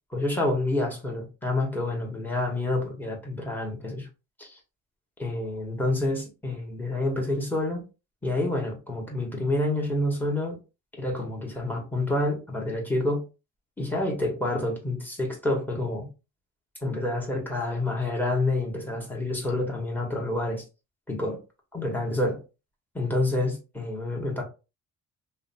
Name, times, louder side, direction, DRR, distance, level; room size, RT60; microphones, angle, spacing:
voice 1, 0.1-4.1 4.4-4.6 5.2-7.8 8.2-10.6 11.0-13.2 13.8-16.1 16.8-20.6 21.1-21.4 21.7-22.4 22.9-24.4, left 2 dB, 5° left, 1.0 m, -28 dB
2.7 x 2.1 x 2.7 m
cardioid pair, 90°, 30 cm